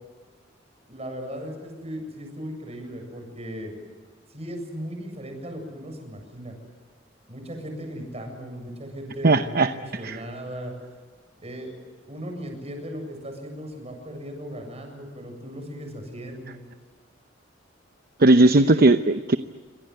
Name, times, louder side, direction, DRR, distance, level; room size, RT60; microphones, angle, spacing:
voice 1, 0.9-3.7 4.3-6.5 7.3-10.7 11.4-11.7 12.1-16.6 18.5-18.8, equal, 35° right, 4 dB, 7.7 m, -37 dB
voice 2, 9.2-9.7 10.0-10.2 18.2-19.4, right 2 dB, 50° right, 10 dB, 0.8 m, -17 dB
27.5 x 26.0 x 8.0 m, 1.5 s
head